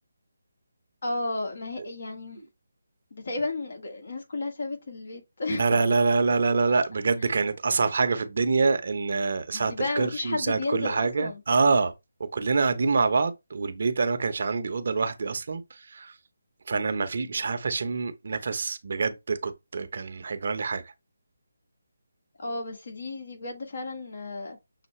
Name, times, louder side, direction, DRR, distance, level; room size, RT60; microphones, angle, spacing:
voice 1, 1.0-2.4 3.1-5.8 9.5-11.4 16.7-17.0 22.4-24.6, left 2 dB, 60° left, 1.6 m, -33 dB
voice 2, 5.5-11.9 12.2-16.1 16.7-20.8, right 4 dB, 55° right, 0.7 m, -26 dB
6.5 x 2.3 x 3.1 m
figure-of-eight pair, 160°, 0 cm